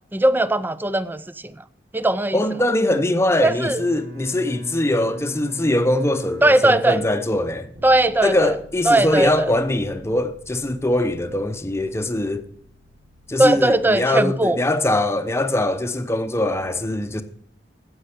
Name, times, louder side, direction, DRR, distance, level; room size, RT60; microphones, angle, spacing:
voice 1, 0.1-1.5 1.9-2.4 3.4-3.8 6.4-7.0 7.8-8.5 8.9-9.5 13.4-14.6, right 1 dB, 10° right, 0.4 m, -19 dB
voice 2, 2.3-7.7 8.2-12.5 13.3-17.2, left 1 dB, 15° left, 0.8 m, -22 dB
Bowed string instrument, 3.4-8.2, equal, 70° right, 2.9 m, -39 dB
Bass guitar, 7.8-14.0, left 1 dB, 90° right, 5.4 m, -48 dB
9.9 x 8.0 x 6.6 m
head